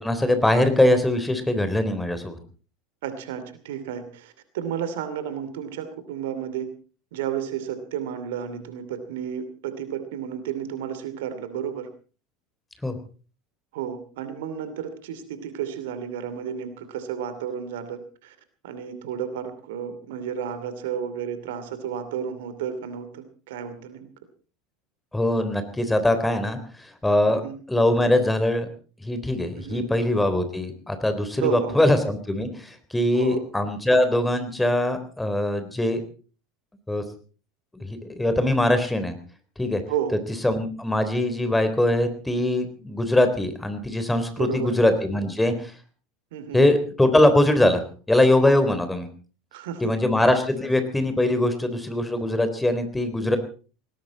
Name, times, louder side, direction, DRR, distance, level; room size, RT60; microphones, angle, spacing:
voice 1, 0.0-2.4 12.8-13.0 25.1-27.4 27.7-28.7 29.0-36.0 36.9-37.0 37.8-39.2 39.6-39.8 40.4-45.7 46.5-47.8 48.1-49.1 49.8-53.4, left 1 dB, 5° left, 9 dB, 3.7 m, -22 dB
voice 2, 3.0-6.7 7.1-11.9 13.7-18.3 18.6-24.1 27.3-27.6 29.5-29.8 31.4-31.8 33.1-33.4 39.9-40.2 44.4-44.7 46.3-46.7 49.5-49.9, right 8 dB, 65° right, 11 dB, 2.7 m, -32 dB
18.5 x 18.5 x 4.1 m, 0.38 s
figure-of-eight pair, 75°, 0 cm